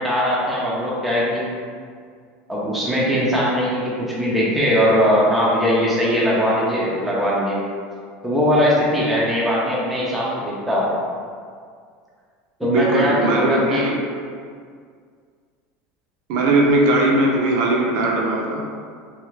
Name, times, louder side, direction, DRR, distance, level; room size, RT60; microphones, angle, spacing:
voice 1, 0.0-1.4 2.5-7.6 8.2-10.9 12.6-13.9, equal, ahead, -7 dB, 0.5 m, -20 dB
voice 2, 12.6-13.9 16.3-18.6, right 2 dB, 55° right, -1 dB, 0.6 m, -19 dB
3.4 x 2.7 x 3.1 m, 2.1 s
cardioid pair, 165°, 5 cm